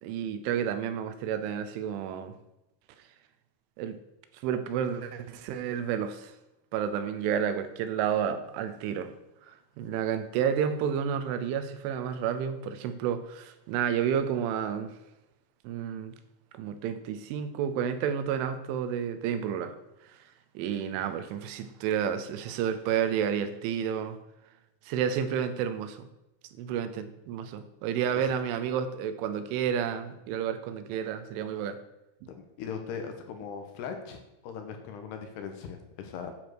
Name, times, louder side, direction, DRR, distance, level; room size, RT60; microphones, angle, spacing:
voice 1, 0.0-2.3 3.8-4.0 4.4-6.3 6.7-9.1 9.8-14.9 15.6-16.1 16.5-19.8 20.5-24.2 24.9-26.0 26.6-31.8 32.2-32.3, right 8 dB, 85° right, 10 dB, 3.4 m, -30 dB
voice 2, 32.6-36.3, left 6 dB, 75° left, 6 dB, 2.8 m, -39 dB
9.8 x 7.4 x 6.3 m, 0.93 s
omnidirectional pair, 5.4 m